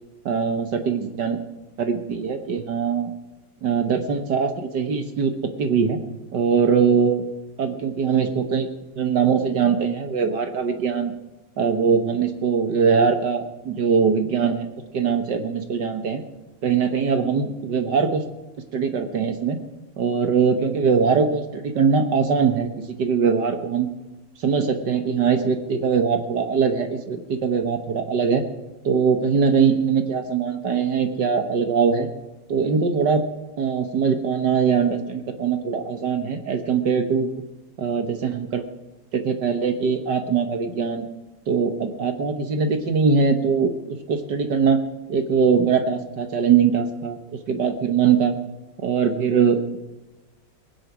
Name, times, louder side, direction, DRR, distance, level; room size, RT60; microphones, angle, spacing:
voice 1, 0.3-1.4 1.8-3.1 3.6-6.0 6.3-7.2 7.6-8.7 9.0-11.1 11.6-14.7 14.9-16.2 16.6-18.2 18.7-19.6 20.0-22.7 23.0-23.9 24.4-28.4 28.8-32.1 32.5-33.2 33.6-37.3 37.8-38.6 39.1-41.1 41.5-44.8 45.1-47.2 47.5-48.3 48.8-49.8, right 6 dB, 55° right, 8 dB, 1.7 m, -21 dB
20.0 x 9.8 x 6.1 m, 1.1 s
omnidirectional pair, 2.4 m